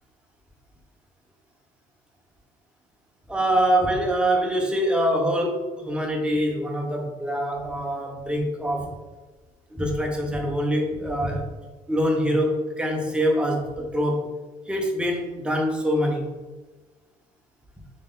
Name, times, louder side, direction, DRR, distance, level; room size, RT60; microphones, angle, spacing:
voice 1, 3.3-8.9 9.7-11.5 11.9-14.3 14.7-16.4, equal, 5° right, 1 dB, 0.6 m, -24 dB
3.2 x 2.6 x 3.6 m, 1.2 s
cardioid pair, 110°, 17 cm